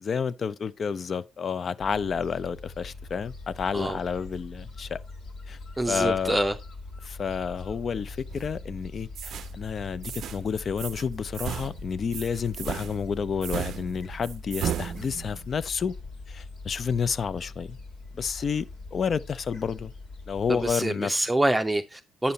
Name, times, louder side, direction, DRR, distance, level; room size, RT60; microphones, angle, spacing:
voice 1, 0.0-5.0 5.5-5.6 5.9-6.4 7.0-15.9 16.3-17.8 18.1-18.7 18.9-19.9 20.3-21.3, left 6 dB, 45° left, 0.5 m, -30 dB
Gull seagull, 1.8-20.7, left 3 dB, 75° left, 2.2 m, -42 dB
voice 2, 5.8-6.5 20.5-22.3, right 1 dB, 10° right, 0.6 m, -26 dB
sound 1, 8.3-8.7 9.2-9.5 10.0-10.4 10.8-11.1 11.3-15.5, right 9 dB, 70° right, 0.5 m, -35 dB
8.7 x 5.5 x 4.0 m
cardioid pair, 90°, 0 cm